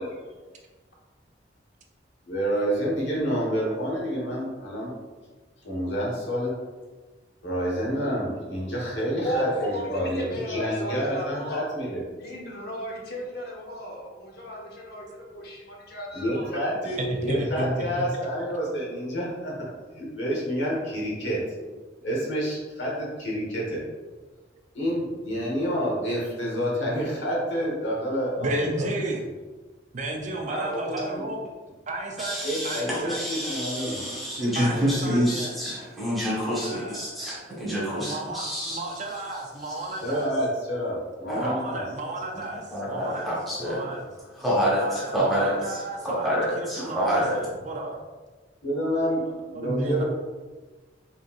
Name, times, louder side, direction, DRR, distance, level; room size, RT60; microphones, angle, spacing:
voice 1, 2.3-4.9 5.6-6.5 7.4-12.0 16.1-19.5 19.9-21.4 22.0-23.8 24.7-28.9 30.8-31.3 32.4-34.0 40.0-41.8 48.6-50.0, equal, 85° left, -4 dB, 1.4 m, -28 dB
voice 2, 9.2-11.6 12.2-16.6 30.4-31.1, equal, 60° left, -2 dB, 0.9 m, -34 dB
voice 3, 17.0-18.0 26.5-26.6 28.4-29.2 29.9-31.5 31.9-33.2 34.5-35.6 36.6-37.0 37.8-40.3 41.4-43.3 43.6-44.0 44.7-48.0 49.2-50.0, right 2 dB, 40° right, 2 dB, 0.5 m, -33 dB
voice 4, 32.2-39.0 39.6-40.0 41.3-41.5 42.3-42.4 42.7-43.8 44.3-47.4, equal, ahead, -8 dB, 1.2 m, -27 dB
4.0 x 3.7 x 2.5 m, 1.3 s
head